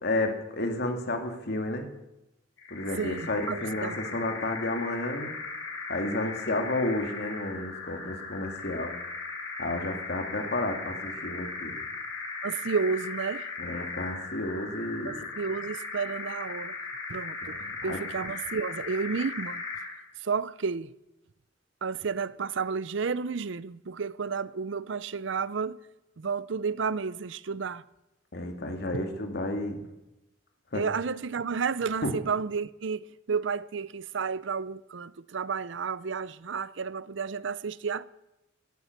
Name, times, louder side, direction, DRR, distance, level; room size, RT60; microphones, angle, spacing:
voice 1, 0.0-1.9 2.7-5.3 5.9-8.9 9.6-11.8 13.6-15.2 17.4-18.0 28.3-29.8 30.7-30.8 32.0-32.1, left 2 dB, 55° left, 2.4 m, -31 dB
sound 1, 2.6-20.0, left 4 dB, 90° left, 5.2 m, -38 dB
voice 2, 3.0-4.0 12.4-13.5 15.0-16.8 17.1-19.6 20.2-20.9 21.8-25.8 26.2-27.8 30.7-38.1, right 5 dB, 70° right, 0.6 m, -31 dB
17.5 x 12.0 x 6.7 m
head